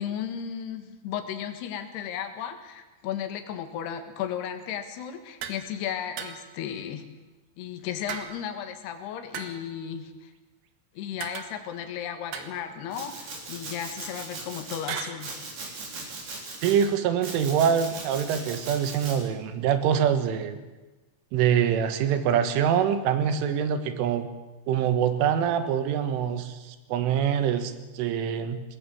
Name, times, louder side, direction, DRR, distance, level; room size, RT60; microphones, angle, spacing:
voice 1, 0.0-7.0 7.6-10.3 10.9-15.4, left 9 dB, 65° left, 7 dB, 3.4 m, -35 dB
sound 1, 5.4-5.7 6.2-6.6 8.1-8.7 9.3-9.8 11.2-11.9 12.3-13.1 14.9-15.2, right 8 dB, 65° right, 2.8 m, -38 dB
Domestic sounds home sounds, 12.9-14.8 15.2-16.9 17.2-19.2, right 3 dB, 45° right, 4.9 m, -39 dB
voice 2, 16.6-20.6 21.3-24.3 24.7-28.6, right 8 dB, 85° right, 9 dB, 3.9 m, -25 dB
20.0 x 17.5 x 7.8 m, 1.2 s
omnidirectional pair, 5.5 m